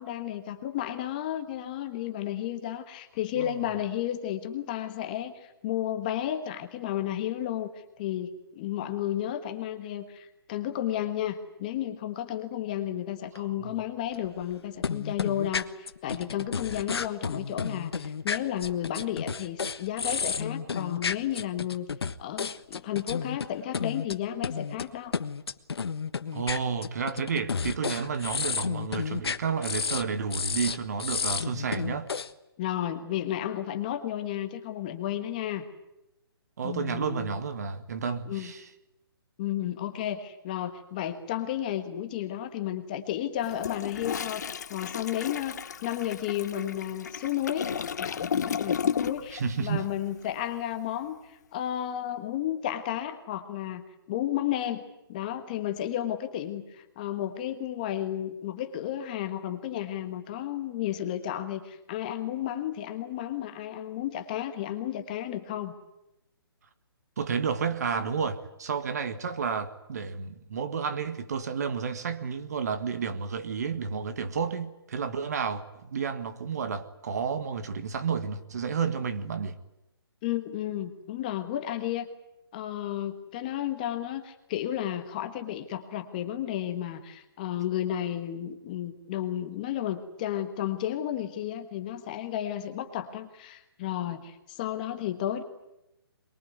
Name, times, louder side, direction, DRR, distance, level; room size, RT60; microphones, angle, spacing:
voice 1, 0.0-7.7 8.0-21.9 22.2-25.1 32.6-35.7 36.6-37.3 38.3-38.5 39.4-44.4 44.7-47.7 48.0-54.8 55.1-65.7 80.2-82.1 82.5-95.4, left 11 dB, 20° left, 1.4 m, -32 dB
voice 2, 3.4-3.7 13.4-13.7 26.3-32.1 36.6-38.7 49.3-49.9 67.2-79.6, right 6 dB, 40° right, 1.7 m, -31 dB
sound 1, 13.4-13.5 14.1-14.6 14.8-23.5 23.7-24.2 24.4-24.9 25.1-30.0 30.3-32.3, left 5 dB, 80° left, 1.4 m, -32 dB
Toilet flush, 43.4-49.4 49.7-49.9, left 7 dB, 45° left, 0.9 m, -33 dB
23.5 x 22.5 x 9.6 m
hypercardioid pair, 175°, 13 cm